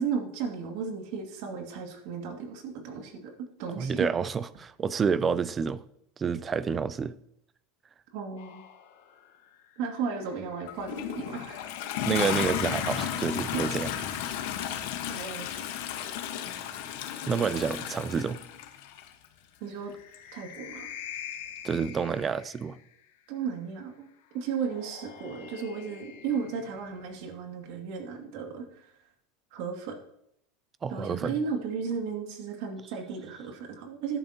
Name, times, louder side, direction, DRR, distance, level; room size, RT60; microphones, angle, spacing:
voice 1, 0.0-3.3 3.6-4.1 8.1-8.6 9.8-11.6 13.5-13.6 14.6-14.8 15.1-15.5 19.6-19.9 20.3-20.9 23.3-24.1 24.3-28.9 29.5-30.0 30.9-34.2, right 6 dB, 60° right, 2.4 m, -34 dB
voice 2, 3.8-5.8 6.2-7.1 12.0-13.9 17.3-18.4 21.6-22.8 30.8-31.3, right 6 dB, 20° right, 0.5 m, -29 dB
sound 1, 8.4-13.9 15.3-18.3 19.6-23.1 24.3-27.3, left 9 dB, 85° left, 1.3 m, -46 dB
Toilet flush, 10.7-19.1 20.1-20.2, left 10 dB, 65° left, 1.3 m, -34 dB
13.0 x 11.0 x 2.9 m
supercardioid pair, 155°, 0 cm